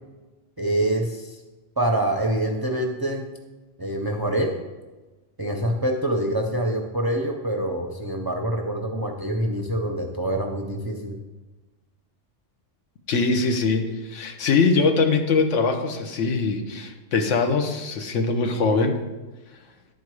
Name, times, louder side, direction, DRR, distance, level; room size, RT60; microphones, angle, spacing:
voice 1, 0.6-1.4 1.8-3.3 3.8-4.6 5.4-11.2, right 1 dB, 30° right, 3 dB, 0.5 m, -25 dB
voice 2, 13.1-19.0, left 4 dB, 80° left, 5 dB, 1.2 m, -22 dB
10.5 x 4.6 x 4.7 m, 1.2 s
omnidirectional pair, 1.2 m